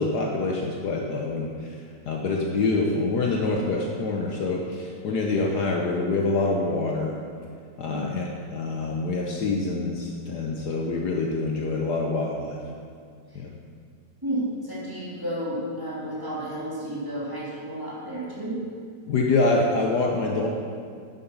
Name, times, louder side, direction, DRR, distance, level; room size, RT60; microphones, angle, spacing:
voice 1, 0.0-1.8 2.1-7.2 7.8-12.6 13.3-13.6 19.1-20.5, left 3 dB, 65° left, 0 dB, 1.4 m, -26 dB
voice 2, 14.2-18.6, right 1 dB, 10° right, -7 dB, 2.5 m, -32 dB
9.7 x 8.1 x 5.4 m, 2.2 s
omnidirectional pair, 2.1 m